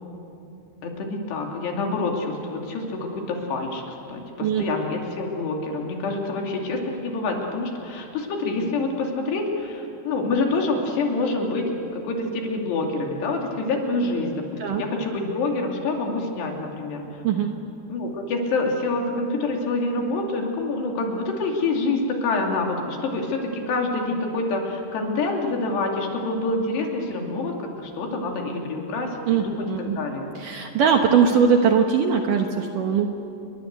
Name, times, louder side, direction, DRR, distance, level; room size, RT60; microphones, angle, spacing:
voice 1, 0.8-3.8 4.1-17.1 17.9-30.3, left 3 dB, 70° left, 1 dB, 4.7 m, -27 dB
voice 2, 17.2-17.6 29.3-30.0 30.4-33.1, right 6 dB, 65° right, 3 dB, 2.3 m, -20 dB
29.0 x 22.5 x 8.1 m, 2.7 s
omnidirectional pair, 5.1 m